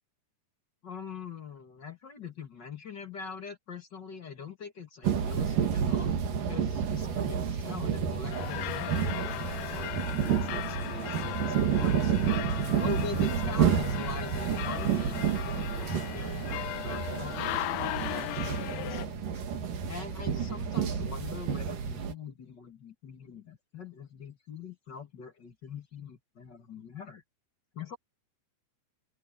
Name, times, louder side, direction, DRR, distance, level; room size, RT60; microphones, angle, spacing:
voice 1, 0.8-12.2 12.8-19.4 19.9-27.2 27.7-28.0, left 6 dB, 45° left, 1.3 m, -43 dB
sound 1, 5.0-22.1, right 8 dB, 50° right, 3.5 m, -30 dB
sound 2, 8.3-19.1, left 17 dB, 85° left, 3.1 m, -37 dB
open air
omnidirectional pair, 5.3 m